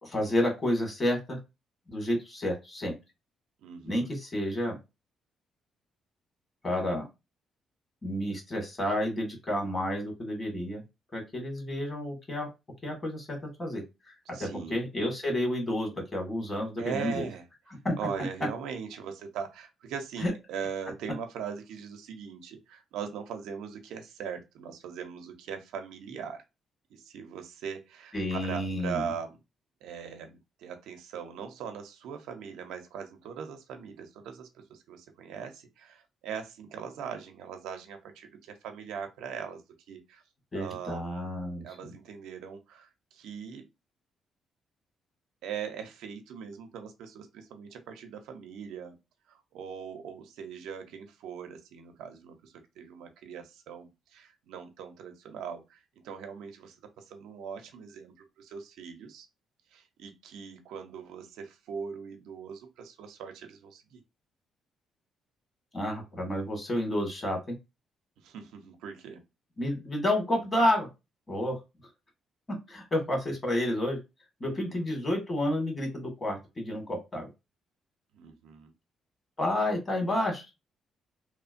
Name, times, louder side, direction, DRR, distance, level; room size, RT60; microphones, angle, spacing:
voice 1, 0.0-1.4 1.9-2.9 3.8-4.8 6.6-7.1 8.0-10.8 11.1-12.5 12.8-14.1 14.4-17.3 17.8-17.9 20.2-20.3 28.1-29.1 40.5-41.9 65.7-67.5 69.6-70.9 71.3-71.5 72.7-74.0 74.4-77.3 79.4-80.4, left 1 dB, 30° left, 1.6 m, -30 dB
voice 2, 3.6-4.1 14.3-14.9 16.8-17.5 18.0-26.4 26.9-29.4 29.8-39.6 39.9-40.2 40.5-41.3 41.6-43.7 45.4-49.0 49.3-59.3 59.7-64.0 68.2-69.2 74.5-74.9 78.1-78.7, right 7 dB, 90° right, 0.5 m, -40 dB
3.0 x 2.1 x 2.5 m
cardioid pair, 90°, 0 cm